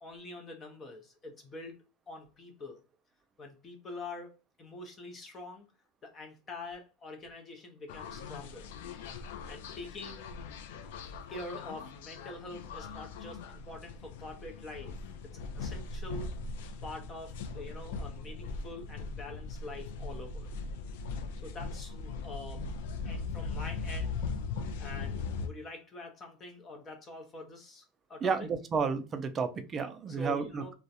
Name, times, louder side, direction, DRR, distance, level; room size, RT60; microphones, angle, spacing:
voice 1, 0.0-2.8 3.4-5.7 6.0-8.7 9.3-10.3 11.3-14.9 15.3-16.3 16.8-20.5 21.4-22.6 23.0-24.2 24.8-28.5 30.1-30.7, left 2 dB, 30° left, 0.5 m, -45 dB
sound 1, 7.9-25.5, left 4 dB, 80° left, 0.3 m, -40 dB
voice 2, 28.2-30.7, right 5 dB, 25° right, 0.3 m, -32 dB
2.4 x 2.0 x 2.7 m
supercardioid pair, 135°, 0 cm